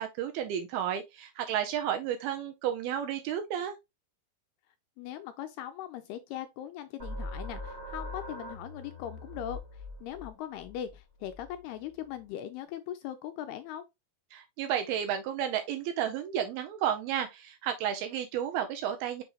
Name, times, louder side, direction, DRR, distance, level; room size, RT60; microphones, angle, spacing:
voice 1, 0.0-3.7 14.3-19.2, right 9 dB, 80° right, 2.3 m, -32 dB
voice 2, 5.0-13.8, left 11 dB, 80° left, 2.4 m, -40 dB
sound 1, 7.0-12.3, left 1 dB, 30° right, 1.0 m, -42 dB
7.1 x 4.8 x 2.9 m
omnidirectional pair, 5.0 m